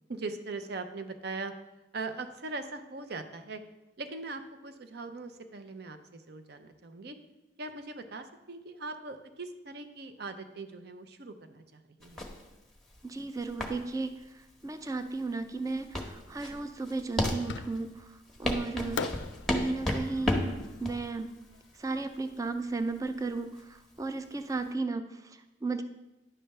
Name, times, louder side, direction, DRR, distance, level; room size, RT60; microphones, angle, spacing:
voice 1, 0.0-1.5 1.9-3.6 4.0-7.1 7.6-12.2, right 3 dB, 60° right, 8 dB, 0.6 m, -40 dB
sound 1, 12.0-24.7, left 1 dB, ahead, 0.9 m, -34 dB
voice 2, 13.0-19.2 19.5-21.3 21.8-25.8, right 3 dB, 20° right, 9 dB, 0.4 m, -35 dB
Fireworks, 17.5-18.1 19.0-22.1, left 5 dB, 75° left, 0.4 m, -41 dB
10.0 x 3.4 x 6.5 m, 1.0 s
head